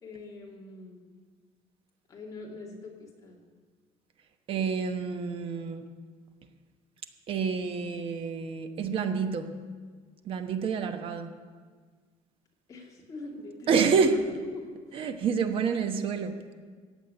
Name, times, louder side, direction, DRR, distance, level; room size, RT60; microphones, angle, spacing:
voice 1, 0.0-1.0 2.1-3.4 12.7-14.7, left 2 dB, 25° left, -2 dB, 2.6 m, -43 dB
voice 2, 4.5-5.8 7.3-9.5 10.2-11.3 13.7-14.1 14.9-16.5, right 6 dB, 40° right, 7 dB, 1.1 m, -28 dB
15.5 x 7.5 x 9.6 m, 1.5 s
cardioid pair, 175°, 13 cm